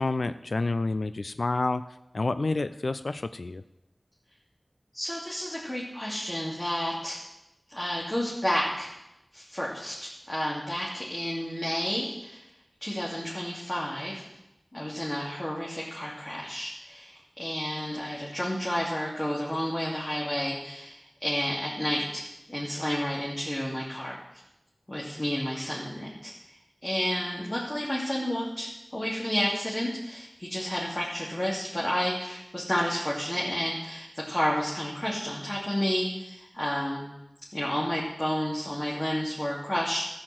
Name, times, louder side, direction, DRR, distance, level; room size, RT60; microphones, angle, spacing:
voice 1, 0.0-1.8 2.1-3.6, left 3 dB, 80° left, 12 dB, 0.4 m, -28 dB
voice 2, 4.9-7.2 7.7-8.9 9.3-12.4 12.8-14.3 14.7-22.2 22.5-24.2 24.9-26.3 26.8-37.1 37.5-40.1, equal, 30° left, -5 dB, 2.6 m, -31 dB
13.0 x 6.5 x 7.6 m, 0.92 s
wide cardioid pair, 45°, 0 cm